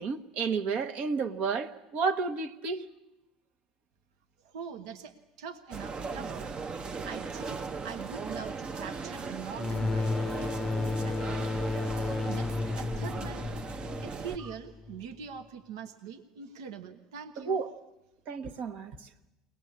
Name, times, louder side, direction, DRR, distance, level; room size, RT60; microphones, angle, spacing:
voice 1, 0.0-2.9 17.5-17.7 18.3-19.1, right 5 dB, 55° right, 1.2 m, -31 dB
voice 2, 4.4-6.6 7.0-11.3 12.3-13.5 14.0-17.6, right 6 dB, 75° right, 1.2 m, -43 dB
sound 1, 5.7-14.4, right 4 dB, 30° right, 0.8 m, -38 dB
sound 2, 9.6-15.0, left 3 dB, 20° left, 0.7 m, -33 dB
22.0 x 18.5 x 8.6 m
hypercardioid pair, 85°, 3 cm